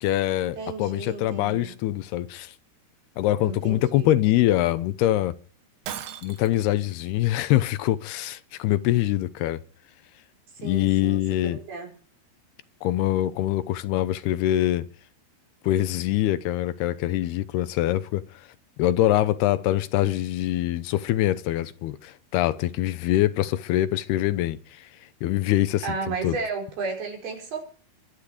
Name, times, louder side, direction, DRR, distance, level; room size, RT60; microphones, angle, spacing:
voice 1, 0.0-2.5 3.2-5.4 6.2-9.6 10.6-11.6 12.8-14.8 15.6-18.2 18.8-24.9 25.2-25.9 26.2-26.4, left 14 dB, 80° left, 2.8 m, -24 dB
voice 2, 0.6-1.7 3.4-4.2 10.5-11.9 25.8-27.6, right 4 dB, 70° right, 7.0 m, -33 dB
Shatter, 5.9-6.7, right 10 dB, 85° right, 3.6 m, -36 dB
23.5 x 10.5 x 5.1 m
omnidirectional pair, 4.7 m